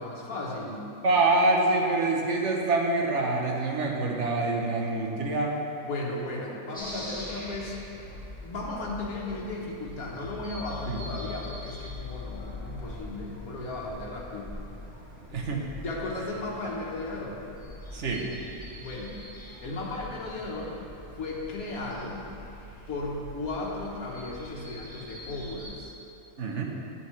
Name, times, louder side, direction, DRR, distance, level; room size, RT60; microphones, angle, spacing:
voice 1, 0.0-0.9 5.9-7.8 8.4-14.5 15.8-17.4 18.8-19.2 19.6-20.8 21.2-22.3 22.9-25.9, left 2 dB, 90° left, -3 dB, 1.5 m, -35 dB
voice 2, 1.0-5.6 10.9-11.2 15.3-15.7 17.9-18.3 26.4-26.6, right 2 dB, 60° right, 0 dB, 1.2 m, -26 dB
sound 1, 6.7-25.7, left 2 dB, 5° left, 1.7 m, -43 dB
10.0 x 8.5 x 3.2 m, 2.9 s
omnidirectional pair, 1.5 m